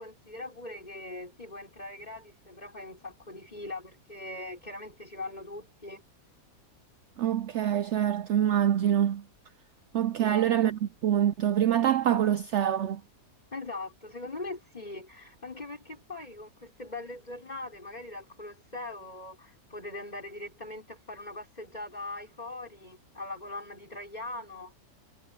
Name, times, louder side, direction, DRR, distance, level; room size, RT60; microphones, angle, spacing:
voice 1, 0.0-6.0 10.2-10.5 13.5-24.7, left 2 dB, 25° left, 5.6 m, -41 dB
voice 2, 7.2-9.2 9.9-13.0, right 10 dB, 75° right, 0.6 m, -25 dB
omnidirectional pair, 1.8 m